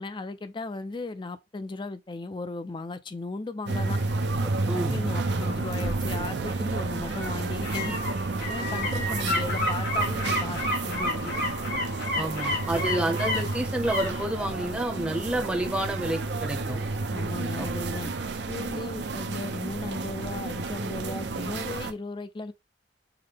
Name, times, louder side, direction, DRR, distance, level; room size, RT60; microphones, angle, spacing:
voice 1, 0.0-4.0 4.7-8.0 8.5-11.3 17.1-18.1 18.5-22.5, left 3 dB, 25° left, 0.4 m, -36 dB
sound 1, 3.7-21.9, right 3 dB, 70° right, 0.6 m, -31 dB
voice 2, 4.6-5.0 12.2-16.8 17.6-18.1, right 1 dB, 5° right, 0.7 m, -29 dB
sound 2, 4.8-17.6 17.9-18.0, left 1 dB, 70° left, 2.4 m, -33 dB
5.7 x 2.1 x 3.4 m
head